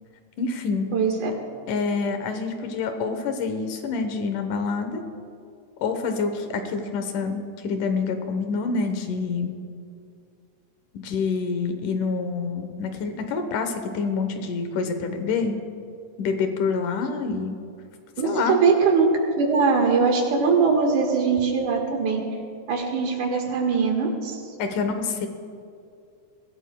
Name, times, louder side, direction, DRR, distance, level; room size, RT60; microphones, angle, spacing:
voice 1, 0.4-0.9 1.7-5.0 5.8-9.6 10.9-15.5 16.2-17.6 18.2-18.6 24.6-25.3, left 4 dB, 90° left, 6 dB, 2.6 m, -27 dB
voice 2, 0.9-1.3 18.2-19.1 19.4-22.2 22.7-24.4, right 5 dB, 80° right, 2 dB, 3.0 m, -21 dB
22.5 x 16.0 x 2.3 m, 2.4 s
omnidirectional pair, 3.5 m